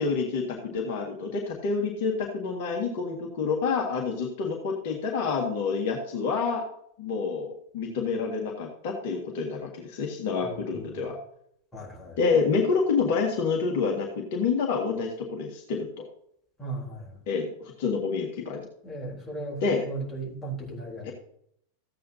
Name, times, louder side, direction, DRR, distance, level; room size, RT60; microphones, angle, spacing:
voice 1, 0.0-6.6 7.0-11.2 12.2-16.1 17.3-18.6 19.6-19.8 21.0-21.1, left 5 dB, 50° left, 1 dB, 1.8 m, -28 dB
voice 2, 10.4-11.1 11.7-12.2 16.6-17.2 18.8-21.1, right 2 dB, 10° left, -4 dB, 3.8 m, -37 dB
14.0 x 8.5 x 2.8 m, 0.69 s
figure-of-eight pair, 90°, 0 cm